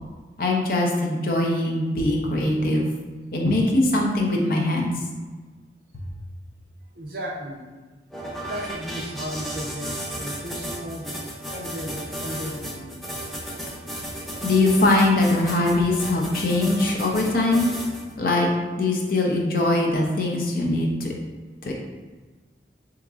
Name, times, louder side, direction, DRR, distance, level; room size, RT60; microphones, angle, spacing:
voice 1, 0.4-2.9 3.3-4.9 14.4-17.7 18.2-18.5 18.8-21.1 21.6-21.7, left 2 dB, 50° left, -1 dB, 0.5 m, -21 dB
voice 2, 6.9-7.7 8.4-11.1 11.5-13.0, equal, 60° right, -1 dB, 0.6 m, -35 dB
sound 1, 8.1-18.1, equal, ahead, 0.4 m, -34 dB
3.7 x 2.9 x 2.4 m, 1.3 s
head